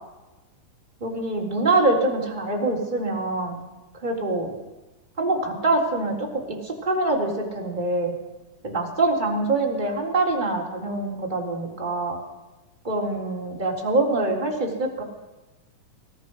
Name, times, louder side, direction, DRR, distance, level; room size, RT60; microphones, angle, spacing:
voice 1, 1.0-3.6 4.0-4.6 5.2-8.1 8.6-12.2 12.8-15.0, right 2 dB, 15° right, -1 dB, 3.6 m, -24 dB
24.0 x 18.0 x 6.4 m, 1.1 s
omnidirectional pair, 4.1 m